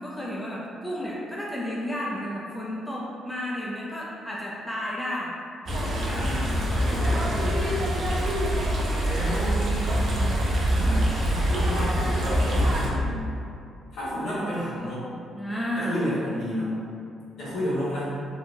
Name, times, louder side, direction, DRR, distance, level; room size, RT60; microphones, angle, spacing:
voice 1, 0.0-5.3 5.9-8.2 10.2-10.5 15.3-16.0, equal, 5° left, -6 dB, 0.4 m, -33 dB
sound 1, 5.7-12.9, equal, 55° right, 0.5 m, -24 dB
voice 2, 5.9-7.3 9.0-9.7 10.7-13.2 13.9-15.0 15.8-16.8 17.4-18.1, equal, 70° left, -11 dB, 1.4 m, -31 dB
2.9 x 2.2 x 2.6 m, 2.4 s
cardioid pair, 90°, 0 cm